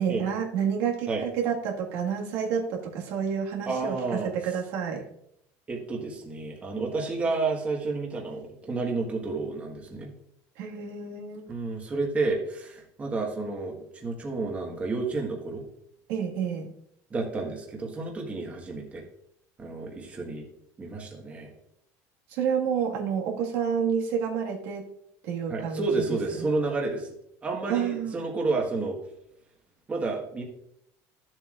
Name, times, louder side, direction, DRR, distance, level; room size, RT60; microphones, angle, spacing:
voice 1, 0.0-5.0 10.6-11.5 16.1-16.7 22.3-24.9 25.2-25.8 26.4-26.5 27.7-28.2, right 7 dB, 80° right, -1 dB, 1.8 m, -29 dB
voice 2, 3.7-4.3 5.7-10.1 11.5-13.7 14.0-15.6 17.1-19.0 19.6-20.4 20.8-21.5 25.5-27.1 27.4-29.0 29.9-30.4, right 3 dB, 20° right, 0 dB, 1.5 m, -30 dB
12.5 x 7.6 x 2.5 m, 0.74 s
cardioid pair, 150°, 7 cm